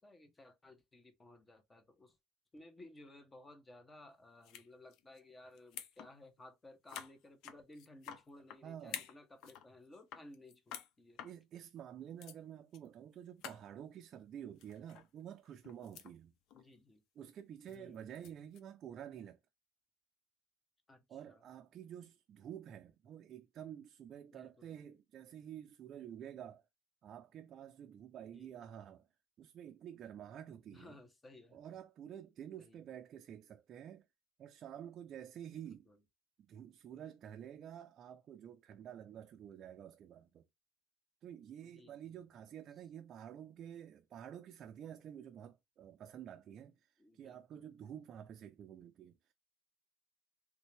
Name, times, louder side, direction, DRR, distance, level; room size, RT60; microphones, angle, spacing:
voice 1, 0.0-2.2 2.5-11.2 16.5-17.0 17.7-18.2 20.9-21.4 24.3-24.8 28.2-28.7 30.7-31.6 32.6-32.8 35.5-36.0 41.6-42.2 47.0-47.7, left 1 dB, 20° left, 0.9 m, -58 dB
sound 1, 4.4-4.7 4.9-5.2 5.5-6.1 6.4-6.5 6.9-8.6 8.9-9.7 9.9-10.9 11.2-11.3 11.9-12.0 12.2-12.4 12.7-12.9 13.1-13.2 13.4-13.6 14.6-15.1 15.4-16.1 16.5-16.7 17.7-18.6, left 9 dB, 65° left, 0.6 m, -49 dB
voice 2, 8.6-9.0 11.2-16.3 17.2-19.4 21.1-26.6 27.0-29.1 29.4-31.0 31.5-34.1 34.4-35.9 36.5-40.5 41.2-49.3, right 9 dB, 45° right, 0.4 m, -50 dB
3.3 x 2.6 x 3.2 m
cardioid pair, 125°, 0 cm